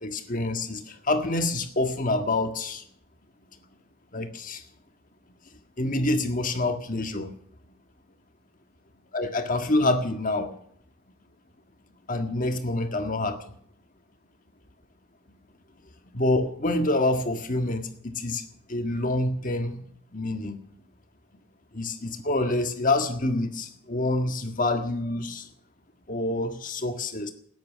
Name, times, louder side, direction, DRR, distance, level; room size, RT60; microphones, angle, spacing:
voice 1, 0.0-2.8 4.1-4.6 5.8-7.3 9.1-10.5 12.1-13.4 16.1-18.4 18.7-19.8 20.1-20.6 21.7-25.4 26.1-27.3, left 2 dB, 35° left, 6 dB, 1.7 m, -27 dB
13.5 x 9.8 x 9.8 m, 0.64 s
head